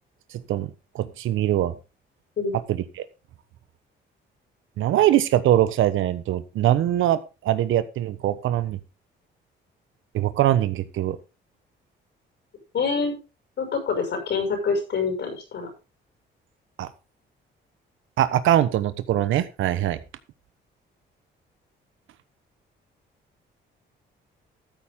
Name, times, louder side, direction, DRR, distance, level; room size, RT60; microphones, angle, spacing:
voice 1, 0.9-1.7 2.7-3.0 4.8-8.8 10.1-11.2 16.8-16.9 18.2-20.0, right 12 dB, 80° right, 14 dB, 1.2 m, -22 dB
voice 2, 12.7-13.1 13.6-15.7, left 5 dB, 60° left, 5 dB, 6.5 m, -26 dB
13.5 x 8.6 x 3.7 m, 0.30 s
cardioid pair, 90°, 20 cm